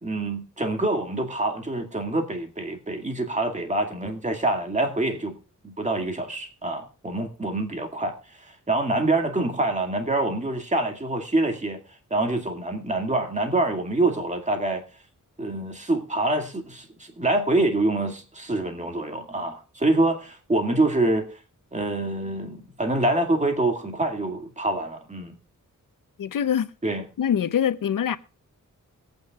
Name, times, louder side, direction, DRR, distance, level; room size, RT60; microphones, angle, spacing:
voice 1, 0.0-5.4 5.6-11.8 12.1-14.8 15.4-21.3 21.7-25.3 26.8-27.0, right 2 dB, 20° right, 2.1 m, -26 dB
voice 2, 26.2-26.7 27.2-28.2, left 8 dB, 85° left, 0.8 m, -24 dB
22.5 x 9.1 x 2.4 m
wide cardioid pair, 115°, 32 cm